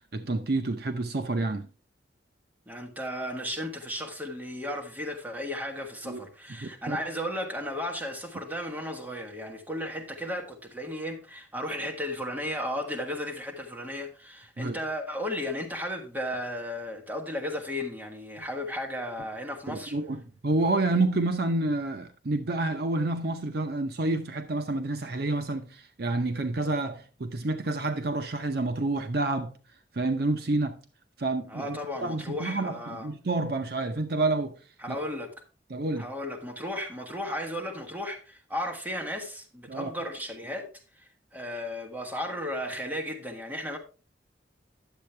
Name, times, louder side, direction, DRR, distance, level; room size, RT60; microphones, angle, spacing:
voice 1, 0.1-1.7 6.0-6.2 6.6-7.0 14.6-14.8 19.7-29.5 29.9-30.8 31.2-34.5 34.9-35.0 35.7-36.1 39.7-39.9, right 2 dB, 55° right, 0.7 m, -29 dB
voice 2, 2.7-19.9 31.5-33.1 34.8-35.3 36.0-40.7 41.0-43.8, left 1 dB, 10° right, 1.4 m, -35 dB
10.0 x 7.5 x 3.3 m
head